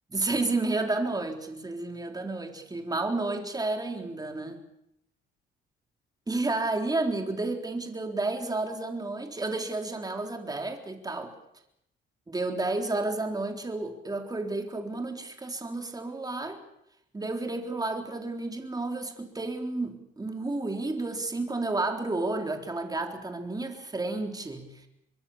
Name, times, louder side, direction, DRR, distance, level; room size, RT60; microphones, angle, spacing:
voice 1, 0.1-4.6 6.3-11.3 12.3-16.6 17.1-24.8, right 2 dB, 20° right, 4 dB, 3.7 m, -31 dB
24.5 x 22.5 x 7.2 m, 0.78 s
cardioid pair, 90°, 20 cm